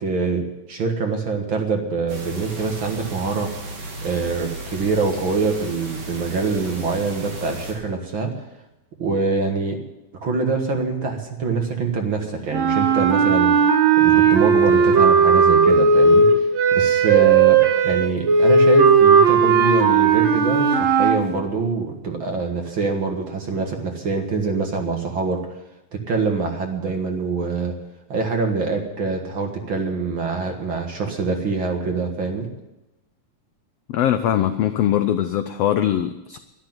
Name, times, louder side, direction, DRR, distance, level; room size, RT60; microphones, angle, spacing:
voice 1, 0.0-3.5 4.0-8.3 9.0-9.8 10.2-13.7 14.0-16.4 16.7-25.4 26.1-27.7 28.1-32.5, right 4 dB, 45° right, 3 dB, 2.0 m, -24 dB
sound 1, 2.1-7.7, right 2 dB, 85° right, 4.6 m, -35 dB
sound 2, 12.5-21.2, right 5 dB, 65° right, 2.7 m, -15 dB
voice 2, 33.9-36.4, left 11 dB, 85° left, 9 dB, 1.3 m, -21 dB
12.0 x 11.5 x 8.9 m, 0.97 s
omnidirectional pair, 3.6 m